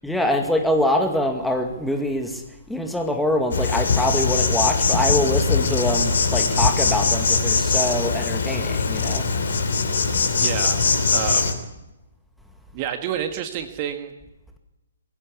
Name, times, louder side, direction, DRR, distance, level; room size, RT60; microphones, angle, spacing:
voice 1, 0.0-2.4 2.7-9.3, left 1 dB, ahead, 4 dB, 2.2 m, -24 dB
Insect, 3.5-11.5, left 4 dB, 55° left, 3.0 m, -21 dB
voice 2, 10.3-10.8 11.1-11.5 12.7-14.1, right 9 dB, 30° right, 7 dB, 1.8 m, -29 dB
23.0 x 15.5 x 8.5 m, 0.98 s
figure-of-eight pair, 130°, 0 cm